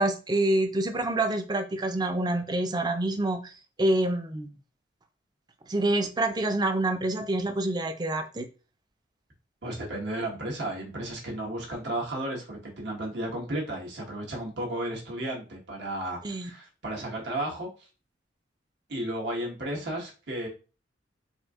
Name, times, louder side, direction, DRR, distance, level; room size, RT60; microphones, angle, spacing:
voice 1, 0.0-3.5 3.8-4.5 5.7-8.5 16.2-16.5, right 1 dB, 20° right, 0.4 m, -27 dB
voice 2, 9.6-17.7 18.9-20.5, right 1 dB, 65° right, 1.3 m, -33 dB
4.2 x 2.6 x 2.4 m
head